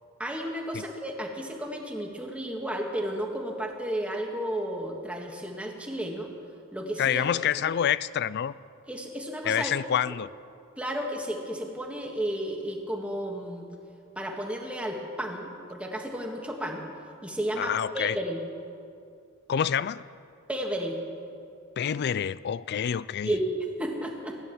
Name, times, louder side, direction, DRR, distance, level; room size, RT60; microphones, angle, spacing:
voice 1, 0.2-6.3 6.7-7.2 7.6-7.7 8.9-9.7 10.8-13.7 14.1-16.9 17.2-18.4 20.5-21.0 23.2-23.4 23.8-24.4, equal, 5° right, 1 dB, 1.7 m, -33 dB
voice 2, 7.0-8.5 9.4-10.3 17.6-18.2 19.5-20.0 21.8-23.3, left 9 dB, 50° left, 18 dB, 0.3 m, -27 dB
16.0 x 11.0 x 7.1 m, 2.4 s
head